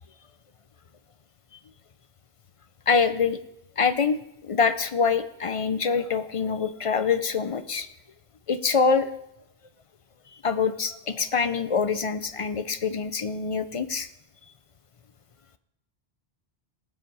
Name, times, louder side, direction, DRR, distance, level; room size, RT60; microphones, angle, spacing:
voice 1, 2.9-3.4 3.8-4.2 4.4-7.9 8.5-9.1 10.4-14.1, left 5 dB, 40° left, 11 dB, 0.5 m, -25 dB
18.5 x 7.4 x 4.7 m, 0.83 s
omnidirectional pair, 1.1 m